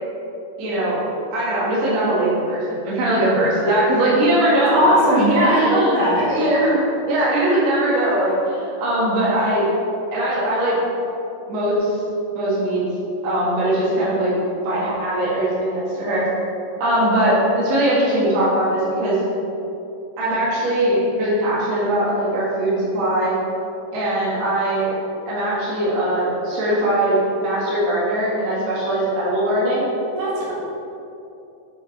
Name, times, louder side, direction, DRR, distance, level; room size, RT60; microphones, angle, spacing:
voice 1, 0.6-1.0 1.3-4.9 5.2-9.7 10.1-10.8 11.5-12.0 12.3-12.8 13.2-14.3 14.6-16.3 16.8-19.2 20.2-23.3 23.9-24.9 25.3-29.9, right 1 dB, 55° right, -8 dB, 2.8 m, -20 dB
voice 2, 4.7-6.3 30.2-30.5, equal, 75° right, -8 dB, 3.5 m, -18 dB
8.6 x 5.0 x 4.8 m, 2.8 s
omnidirectional pair, 3.9 m